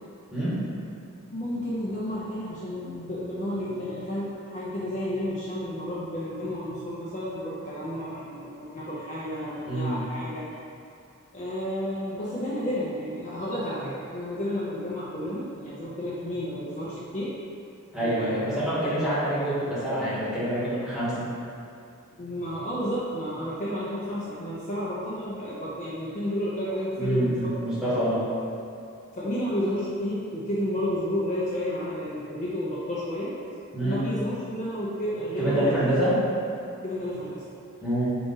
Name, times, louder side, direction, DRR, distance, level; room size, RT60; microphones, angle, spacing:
voice 1, 0.3-0.6 9.7-10.0 17.9-21.2 26.9-28.2 33.7-34.0 35.4-36.2 37.8-38.1, right 1 dB, ahead, -12 dB, 1.2 m, -26 dB
voice 2, 1.3-10.5 11.3-17.3 18.0-18.4 19.0-19.1 22.2-28.0 29.1-33.3 33.8-35.9 36.8-37.4, equal, 35° left, -8 dB, 0.5 m, -31 dB
3.8 x 2.4 x 3.8 m, 2.4 s
head